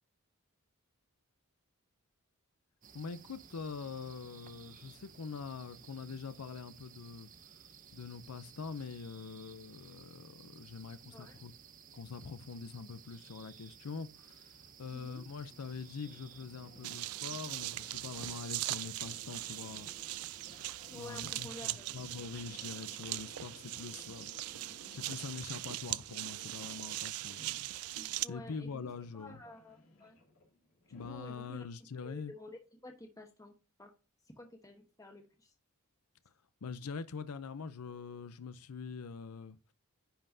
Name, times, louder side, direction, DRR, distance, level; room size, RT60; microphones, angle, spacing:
sound 1, 2.8-21.5, right 7 dB, 35° right, 0.6 m, -57 dB
voice 1, 2.9-7.3 7.9-11.5 11.9-20.3 20.9-29.4 30.9-32.3 36.6-39.7, left 5 dB, 85° left, 0.6 m, -44 dB
voice 2, 11.0-11.4 14.9-15.2 20.9-22.0 28.2-30.2 31.1-31.6 32.0-33.9 34.4-35.5, left 1 dB, 15° left, 1.1 m, -51 dB
sound 2, 15.2-31.5, left 1 dB, 70° left, 2.6 m, -59 dB
sound 3, 16.8-28.3, right 17 dB, 80° right, 0.4 m, -40 dB
10.0 x 5.5 x 2.7 m
head